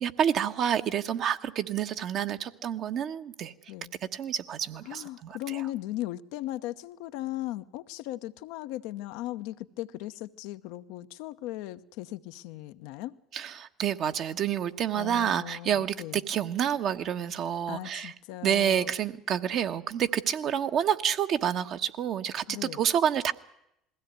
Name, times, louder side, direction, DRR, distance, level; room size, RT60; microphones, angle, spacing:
voice 1, 0.0-3.5 4.1-5.6 13.3-18.1 18.4-23.3, right 9 dB, 55° right, 7 dB, 1.3 m, -28 dB
voice 2, 4.8-13.2 14.9-16.2 17.7-18.9 22.5-22.8, left 15 dB, 75° left, 11 dB, 0.9 m, -38 dB
21.0 x 16.5 x 9.4 m, 0.81 s
hypercardioid pair, 75°, 0 cm